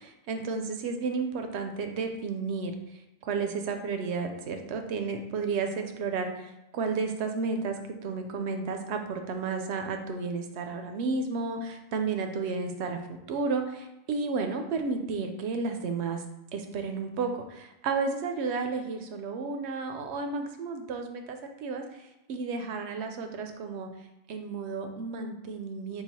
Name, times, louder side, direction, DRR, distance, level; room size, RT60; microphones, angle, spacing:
voice 1, 0.3-2.7 3.2-13.0 13.3-16.2 16.5-23.9 24.3-26.0, right 4 dB, 85° right, 6 dB, 0.8 m, -32 dB
3.9 x 2.3 x 4.2 m, 0.92 s
omnidirectional pair, 1.1 m